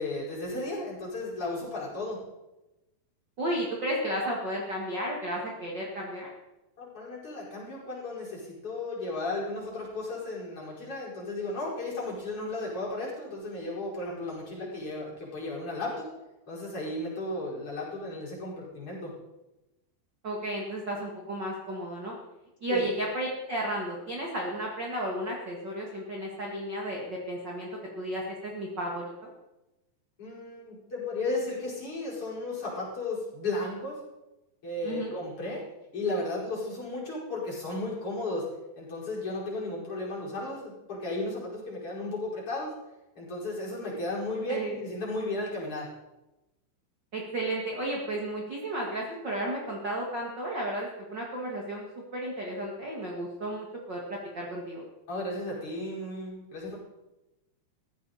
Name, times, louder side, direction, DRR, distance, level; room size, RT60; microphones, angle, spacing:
voice 1, 0.0-2.2 6.8-16.1 16.5-19.1 22.7-22.9 30.2-34.0 34.6-35.6 35.9-38.5 38.8-42.7 43.2-45.9 55.1-56.8, left 2 dB, 30° left, -5 dB, 5.5 m, -34 dB
voice 2, 3.4-6.3 20.2-22.1 22.6-27.7 27.9-29.3 34.8-35.2 44.5-44.7 47.1-51.8 52.1-54.8, right 1 dB, 40° right, -2 dB, 1.6 m, -33 dB
17.0 x 14.5 x 4.3 m, 1.0 s
omnidirectional pair, 5.5 m